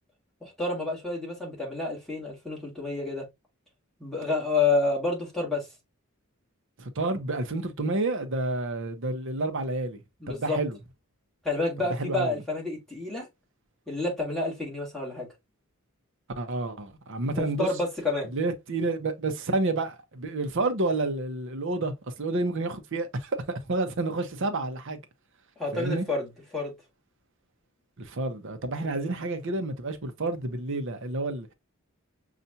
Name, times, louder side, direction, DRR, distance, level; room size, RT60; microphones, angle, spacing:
voice 1, 0.4-3.2 4.0-5.7 10.2-10.6 11.4-13.3 13.9-15.3 17.4-18.3 25.6-26.3 26.5-26.7 28.8-29.1, left 3 dB, ahead, 1.8 m, -29 dB
voice 2, 6.8-10.0 10.3-10.8 12.0-12.4 16.4-17.7 18.3-25.0 25.7-26.0 28.0-31.5, right 2 dB, 60° right, 0.7 m, -29 dB
5.6 x 2.4 x 2.6 m
head